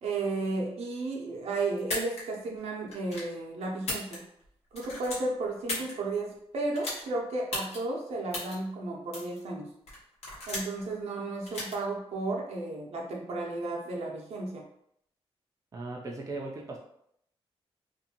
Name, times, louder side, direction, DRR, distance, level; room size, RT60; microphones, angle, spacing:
voice 1, 0.0-4.2 4.7-9.7 10.5-14.6, right 2 dB, 75° right, -1 dB, 0.6 m, -33 dB
sound 1, 1.8-2.2 2.9-3.3 3.7-4.5 4.7-5.9 6.7-7.0 7.5-7.8 8.3-8.5 9.1-9.4 9.9-10.8 11.5-11.7, left 2 dB, 80° left, 1.0 m, -35 dB
voice 2, 15.7-16.8, right 2 dB, 30° right, -1 dB, 0.4 m, -38 dB
2.6 x 2.2 x 2.8 m, 0.73 s
cardioid pair, 110°, 11 cm